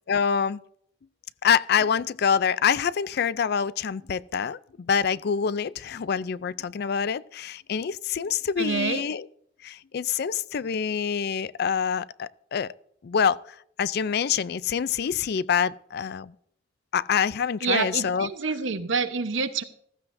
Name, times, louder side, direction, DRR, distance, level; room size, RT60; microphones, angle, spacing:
voice 1, 0.1-0.6 1.4-9.3 9.6-12.7 13.0-13.4 13.8-16.3 16.9-18.3, left 7 dB, 55° left, 0.4 m, -26 dB
voice 2, 8.6-9.1 17.6-19.6, right 5 dB, 75° right, 1.0 m, -27 dB
15.0 x 14.5 x 2.6 m
head